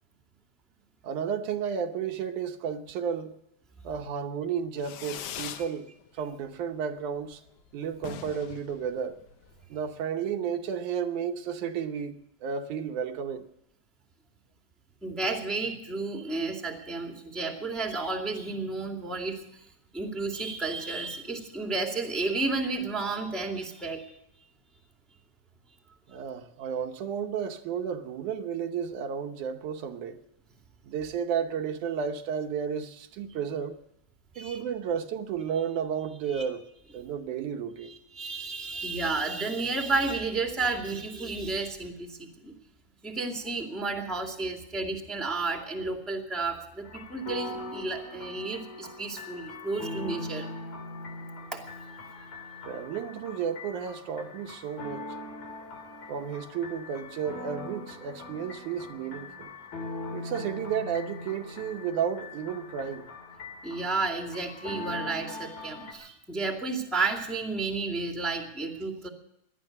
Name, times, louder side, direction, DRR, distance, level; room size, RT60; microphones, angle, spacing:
voice 1, 1.0-3.4 3.8-5.9 6.1-7.4 7.7-9.2 9.7-13.5 26.1-30.2 30.8-33.8 34.4-36.6 36.9-37.9 52.7-55.1 56.1-59.5 60.1-63.1, right 7 dB, 80° right, 2.4 m, -32 dB
Fireworks, 4.8-5.7 6.1-6.6 6.9-7.0 7.2-7.3 7.6-7.7 7.9-9.6, left 9 dB, 75° left, 2.4 m, -41 dB
voice 2, 15.0-19.6 19.9-24.1 34.3-34.6 36.3-36.5 37.8-42.5 43.0-50.5 51.3-52.3 63.6-69.1, right 3 dB, ahead, 1.9 m, -32 dB
sound 1, 46.8-65.9, left 2 dB, 55° left, 4.0 m, -41 dB
18.0 x 12.0 x 6.6 m
omnidirectional pair, 3.5 m